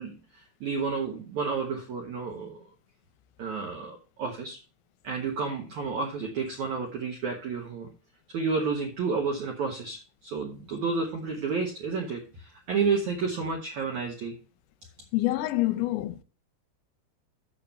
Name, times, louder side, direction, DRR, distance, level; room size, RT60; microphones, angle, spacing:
voice 1, 0.0-2.7 3.4-4.6 5.0-7.9 8.3-14.3, right 5 dB, 75° right, 1.7 m, -31 dB
voice 2, 15.1-16.2, left 17 dB, 80° left, 2.8 m, -26 dB
7.1 x 6.7 x 5.7 m
omnidirectional pair, 5.3 m